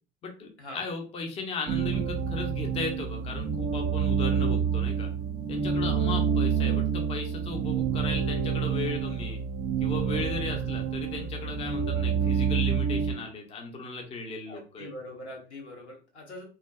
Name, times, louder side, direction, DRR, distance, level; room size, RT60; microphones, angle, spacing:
voice 1, 0.2-5.1 5.5-9.4 9.8-14.9, left 3 dB, 20° left, 2 dB, 0.5 m, -36 dB
sound 1, 1.7-13.1, right 7 dB, 30° right, 0.5 m, -28 dB
voice 2, 14.5-16.4, left 1 dB, 85° left, -1 dB, 0.8 m, -43 dB
2.5 x 2.2 x 2.2 m, 0.34 s
figure-of-eight pair, 75°, 33 cm